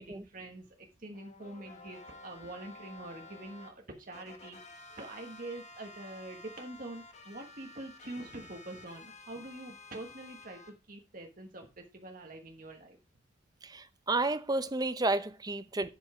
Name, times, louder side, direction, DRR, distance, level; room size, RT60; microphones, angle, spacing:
voice 1, 0.0-13.0, right 2 dB, 40° right, 1.3 m, -45 dB
sound 1, 1.1-3.7 4.1-10.7, left 2 dB, 35° left, 1.4 m, -52 dB
voice 2, 13.6-15.9, right 2 dB, 20° right, 0.6 m, -31 dB
10.5 x 5.4 x 4.8 m
head